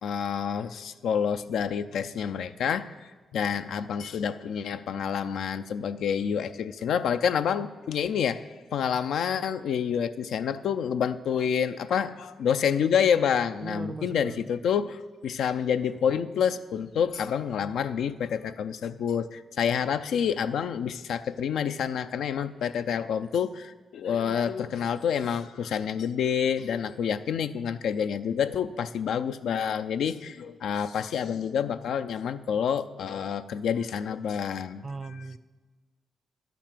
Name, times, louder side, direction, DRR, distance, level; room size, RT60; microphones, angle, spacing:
voice 1, 0.0-3.0 3.3-8.4 8.7-34.8, left 7 dB, 80° left, 10 dB, 0.4 m, -28 dB
voice 2, 13.6-14.5 34.8-35.4, right 3 dB, 40° right, 15 dB, 0.5 m, -38 dB
11.0 x 5.9 x 6.8 m, 1.3 s
cardioid pair, 65°, 0 cm